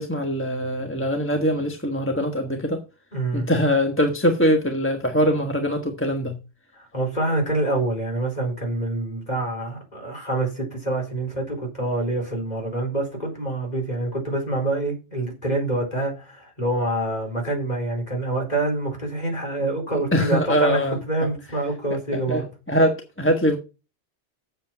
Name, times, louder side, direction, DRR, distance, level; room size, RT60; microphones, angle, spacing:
voice 1, 0.0-2.8 3.3-6.3 20.1-21.0 22.1-23.6, equal, 10° left, 1.3 m, -22 dB
voice 2, 3.1-3.5 6.9-20.8 21.1-22.4, right 2 dB, 40° left, 4.5 m, -26 dB
8.2 x 7.7 x 5.9 m
omnidirectional pair, 1.2 m